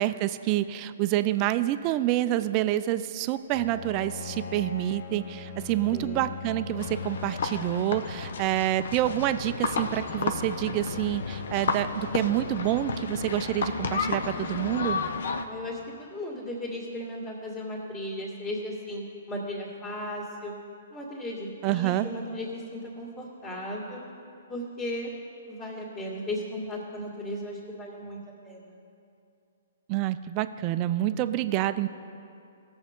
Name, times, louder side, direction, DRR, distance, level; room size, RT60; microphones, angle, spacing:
voice 1, 0.0-15.0 21.6-22.1 29.9-31.9, right 14 dB, 35° right, 12 dB, 0.4 m, -27 dB
Bowed string instrument, 3.5-8.9, left 7 dB, 45° left, 0.9 m, -40 dB
voice 2, 5.9-6.4 15.4-20.5 20.9-24.0 24.5-25.1 25.5-28.2 28.4-28.8, left 1 dB, 25° left, -7 dB, 2.1 m, -36 dB
sound 1, 6.8-15.4, left 4 dB, 65° left, 0.7 m, -32 dB
17.5 x 7.1 x 3.7 m, 2.6 s
hypercardioid pair, 130°, 0 cm